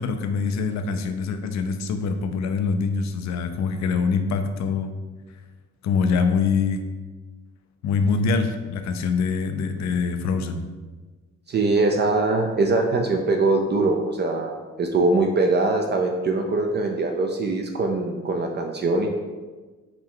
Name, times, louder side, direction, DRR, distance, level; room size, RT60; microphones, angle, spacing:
voice 1, 0.0-4.9 5.8-6.8 7.8-10.6, left 5 dB, 65° left, 7 dB, 0.5 m, -24 dB
voice 2, 11.5-14.5 14.8-19.1, right 3 dB, 35° right, 3 dB, 0.4 m, -22 dB
4.7 x 2.3 x 3.6 m, 1.3 s
cardioid pair, 90°, 30 cm